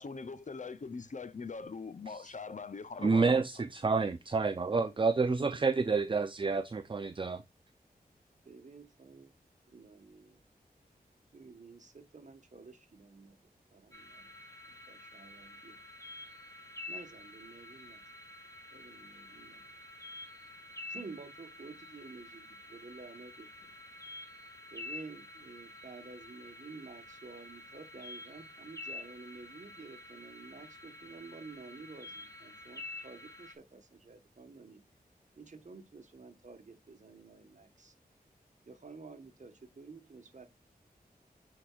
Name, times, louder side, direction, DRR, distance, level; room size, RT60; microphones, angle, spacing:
voice 1, 0.0-3.4, left 4 dB, 50° left, 0.6 m, -42 dB
voice 2, 3.0-7.4, right 4 dB, 30° right, 0.5 m, -29 dB
voice 3, 5.5-5.9 8.4-9.3 9.7-10.4 11.3-15.8 16.9-18.0 18.7-19.8 20.9-24.0 24.7-34.8 35.4-37.9 38.7-40.5, right 4 dB, 50° right, 1.3 m, -51 dB
sound 1, 13.9-33.5, left 2 dB, 20° left, 2.5 m, -49 dB
8.7 x 4.8 x 2.4 m
wide cardioid pair, 100°, 16 cm